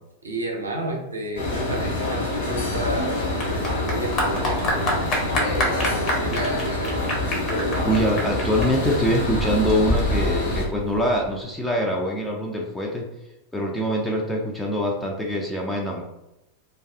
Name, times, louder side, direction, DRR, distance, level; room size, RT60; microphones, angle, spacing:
voice 1, 0.2-3.1 3.5-5.0 5.3-7.1, right 1 dB, 75° right, 1 dB, 0.5 m, -31 dB
sound 1, 1.4-10.7, left 1 dB, 65° left, 0.7 m, -26 dB
Clapping / Applause, 2.3-11.3, left 1 dB, 30° left, 0.7 m, -28 dB
voice 2, 7.8-13.1 13.5-16.0, equal, 5° left, -2 dB, 0.4 m, -24 dB
2.3 x 2.3 x 2.3 m, 0.91 s
figure-of-eight pair, 90°, 0 cm